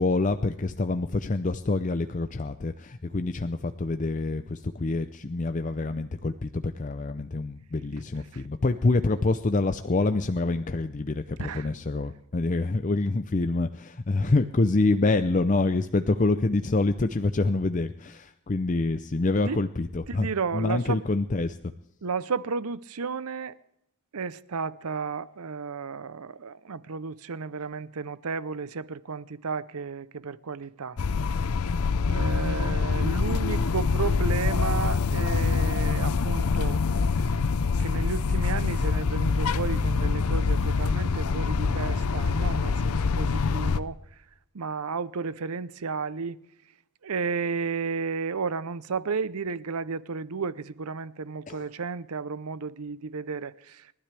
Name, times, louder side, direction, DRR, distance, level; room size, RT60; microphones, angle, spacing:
voice 1, 0.0-21.7 51.5-51.6, left 3 dB, 35° left, 0.5 m, -26 dB
voice 2, 11.4-11.7 19.5-19.6 20.1-21.0 22.0-23.6 24.1-31.0 32.0-36.8 37.3-37.4 37.8-44.0 44.5-46.4 47.0-53.9, right 5 dB, 85° right, 0.7 m, -33 dB
sound 1, 31.0-43.8, left 4 dB, 80° left, 0.6 m, -25 dB
30.0 x 12.5 x 3.4 m
head